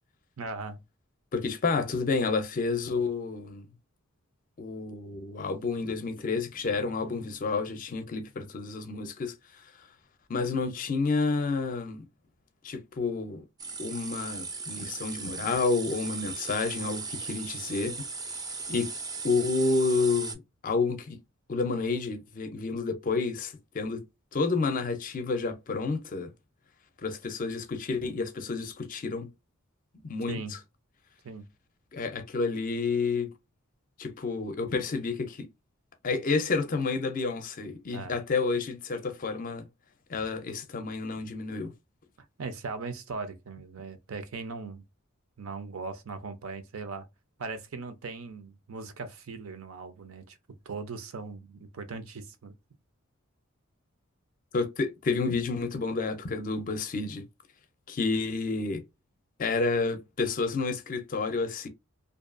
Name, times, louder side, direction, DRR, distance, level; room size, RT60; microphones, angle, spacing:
voice 1, 0.4-0.8 30.3-30.6 31.2-31.5 37.9-38.1 42.4-44.8 45.4-47.1 47.4-50.4 50.7-52.5, right 4 dB, 75° right, 0.5 m, -39 dB
voice 2, 1.3-3.6 4.6-9.3 10.3-12.0 12.6-13.4 13.8-17.9 18.7-18.9 19.2-21.2 21.5-24.0 24.3-26.3 27.0-29.3 30.0-30.4 31.9-33.3 34.0-35.5 36.0-39.7 40.1-41.7 54.5-57.2 57.9-58.8 59.4-61.7, left 4 dB, 40° left, 0.5 m, -30 dB
sound 1, 13.6-20.3, right 4 dB, 20° right, 0.4 m, -37 dB
2.6 x 2.3 x 2.4 m
head